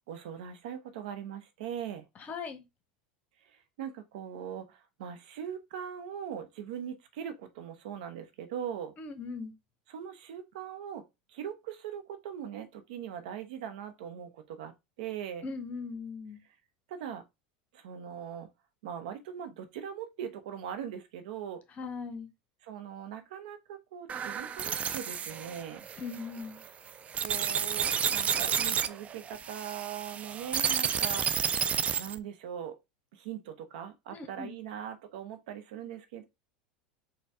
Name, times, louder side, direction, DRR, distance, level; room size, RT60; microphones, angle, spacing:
voice 1, 0.0-2.0 3.8-8.9 9.9-11.0 11.3-14.7 15.0-15.4 16.9-17.2 17.7-18.5 18.8-21.6 22.6-25.8 27.2-31.3 32.0-32.8 33.1-36.2, right 9 dB, 75° right, 0.7 m, -40 dB
voice 2, 2.3-2.6 9.0-9.5 15.4-16.4 21.8-22.3 26.0-26.6 34.1-34.5, left 4 dB, 35° left, 0.9 m, -39 dB
sound 1, 24.1-32.2, right 7 dB, 30° right, 0.3 m, -31 dB
4.2 x 2.2 x 3.5 m
hypercardioid pair, 95°, 4 cm